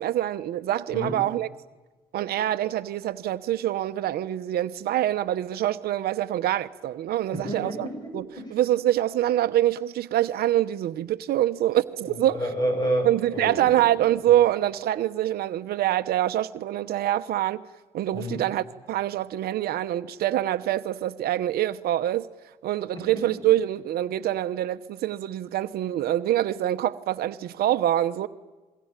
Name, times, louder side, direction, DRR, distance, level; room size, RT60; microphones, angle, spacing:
voice 1, 0.0-1.5 2.1-7.9 8.1-8.3 8.5-12.4 13.0-17.6 17.9-22.3 22.6-28.3, right 13 dB, 65° right, 0.9 m, -25 dB
voice 2, 7.3-8.5 12.0-13.7 18.1-18.4 22.9-23.3, equal, 25° left, 8.0 m, -30 dB
27.0 x 22.5 x 9.0 m
cardioid pair, 110°, 17 cm